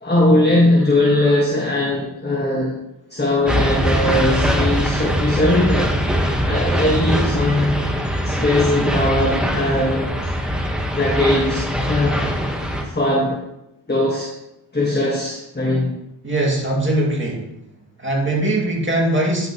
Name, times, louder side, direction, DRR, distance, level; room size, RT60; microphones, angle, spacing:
voice 1, 0.0-2.8 3.1-6.0 6.4-7.8 8.2-10.1 10.9-12.2 12.7-13.4 13.9-14.3 14.7-16.0, left 1 dB, 20° left, -2 dB, 1.5 m, -19 dB
sound 1, 3.5-12.8, equal, ahead, 1.3 m, -21 dB
voice 2, 16.2-17.5 18.0-19.5, right 1 dB, 25° right, -2 dB, 2.3 m, -20 dB
10.0 x 6.0 x 3.0 m, 0.85 s
cardioid pair, 65°, 49 cm